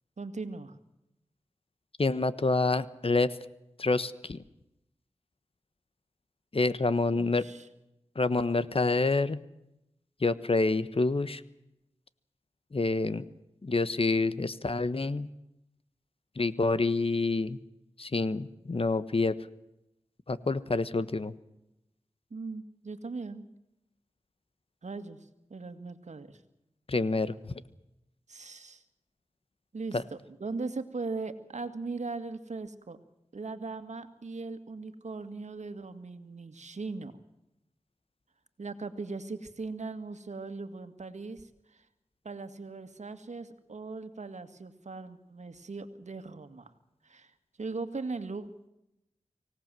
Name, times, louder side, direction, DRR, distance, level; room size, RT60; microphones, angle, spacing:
voice 1, 0.2-0.8 7.1-7.7 22.3-23.5 24.8-26.4 28.3-28.8 29.7-33.0 33.3-37.1 38.6-41.9 42.2-46.7 47.0-47.3 47.6-48.5, right 3 dB, 75° right, 10 dB, 2.0 m, -39 dB
voice 2, 2.0-3.3 3.8-4.4 6.5-7.4 8.1-9.4 10.2-11.4 12.7-13.2 13.6-15.3 16.4-17.6 18.0-19.4 20.3-21.3 26.9-27.5 29.9-30.0, left 3 dB, 50° left, 15 dB, 1.3 m, -27 dB
25.0 x 17.5 x 7.7 m, 0.87 s
wide cardioid pair, 50°, 12 cm